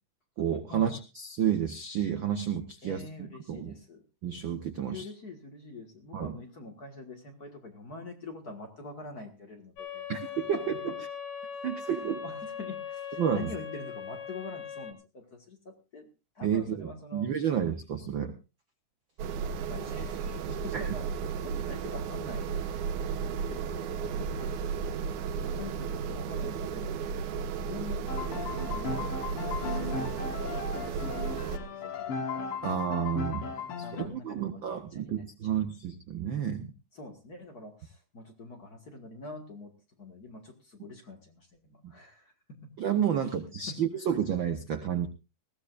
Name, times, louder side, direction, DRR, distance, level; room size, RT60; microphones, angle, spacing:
voice 1, 0.4-3.1 3.5-3.7 4.2-5.1 6.1-6.3 10.1-10.6 11.6-12.2 13.2-13.5 16.4-18.3 20.7-20.9 28.9-29.1 32.6-33.5 33.8-36.7 42.8-45.1, right 9 dB, 65° right, 8 dB, 1.2 m, -30 dB
voice 2, 2.8-4.0 4.9-10.8 11.8-16.1 16.4-17.3 19.7-23.8 24.2-24.8 25.4-29.2 29.6-32.3 33.8-34.6 34.9-35.6 36.9-39.7 40.0-42.7 43.7-43.8, left 2 dB, 35° left, 3 dB, 1.8 m, -45 dB
sound 1, 9.8-14.9, left 7 dB, 75° left, 3.4 m, -40 dB
sound 2, 19.2-31.6, right 6 dB, 85° right, 2.4 m, -34 dB
sound 3, 28.1-34.0, left 5 dB, 55° left, 1.9 m, -36 dB
20.0 x 16.0 x 2.5 m, 0.29 s
omnidirectional pair, 3.5 m